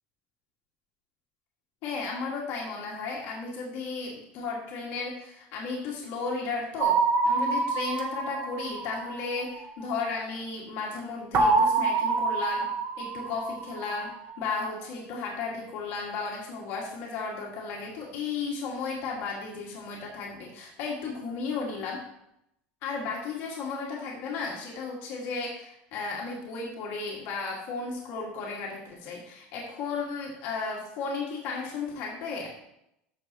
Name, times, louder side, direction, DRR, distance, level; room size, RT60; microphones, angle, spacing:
voice 1, 1.8-7.0 7.2-12.7 13.0-22.0 22.8-32.5, left 4 dB, 55° left, -2 dB, 1.9 m, -34 dB
sound 1, 6.8-9.7 11.3-14.2, right 4 dB, 40° right, 1.0 m, -27 dB
13.5 x 6.3 x 2.9 m, 0.81 s
cardioid pair, 165°, 5 cm